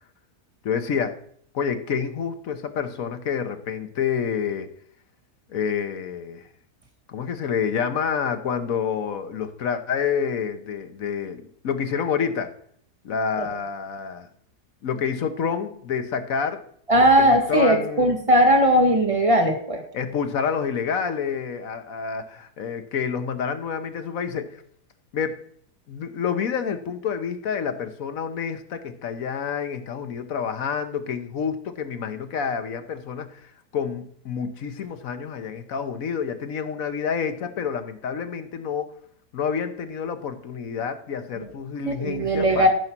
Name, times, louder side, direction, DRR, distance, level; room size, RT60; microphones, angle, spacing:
voice 1, 0.6-1.2 1.5-4.7 5.5-6.5 7.1-12.5 13.0-14.3 14.8-16.6 16.9-18.1 19.9-24.6 25.1-25.4 25.9-38.9 39.3-42.7, left 6 dB, 60° left, 9 dB, 1.4 m, -28 dB
voice 2, 16.9-19.8 41.9-42.7, equal, 20° right, 3 dB, 1.8 m, -18 dB
14.0 x 5.5 x 6.0 m, 0.62 s
omnidirectional pair, 1.7 m